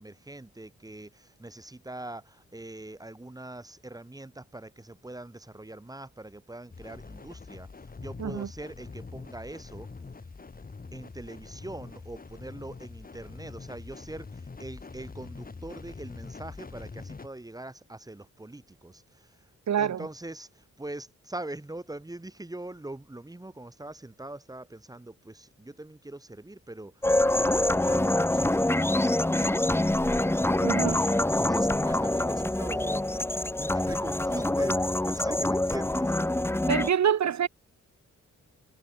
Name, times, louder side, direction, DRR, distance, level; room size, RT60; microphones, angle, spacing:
voice 1, 0.0-9.9 10.9-19.5 19.8-27.1 27.3-30.4 30.7-36.4, right 2 dB, 10° right, 5.6 m, -42 dB
sound 1, 6.7-17.3, left 4 dB, 30° left, 6.4 m, -44 dB
voice 2, 19.7-20.1 30.6-31.0 36.7-37.5, right 9 dB, 70° right, 2.4 m, -26 dB
sound 2, 27.0-36.9, left 1 dB, 10° left, 1.3 m, -25 dB
wide cardioid pair, 145°, 29 cm